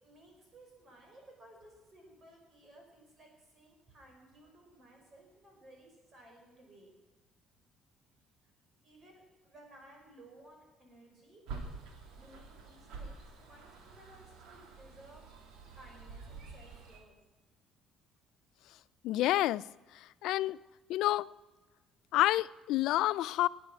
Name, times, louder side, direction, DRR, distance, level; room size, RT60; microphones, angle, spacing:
voice 1, 0.0-6.9 8.4-8.5 8.8-11.4 12.1-15.2 15.7-17.2, right 1 dB, 30° right, 5.4 m, -58 dB
sound 1, 11.5-17.0, right 4 dB, 80° right, 2.9 m, -48 dB
voice 2, 19.0-19.6 20.2-20.6 20.9-21.3 22.1-23.5, left 15 dB, 75° left, 0.4 m, -28 dB
19.0 x 9.1 x 6.1 m
cardioid pair, 140°, 0 cm